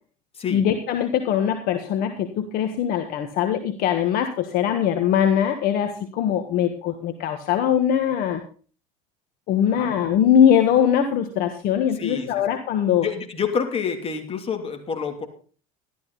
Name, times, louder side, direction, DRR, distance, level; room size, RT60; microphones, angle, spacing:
voice 1, 0.5-8.4 9.5-13.1, left 9 dB, 55° left, 7 dB, 1.5 m, -21 dB
voice 2, 12.0-12.4 13.0-15.3, left 6 dB, 35° left, 5 dB, 3.0 m, -28 dB
13.0 x 12.5 x 4.1 m, 0.40 s
supercardioid pair, 95°, 18 cm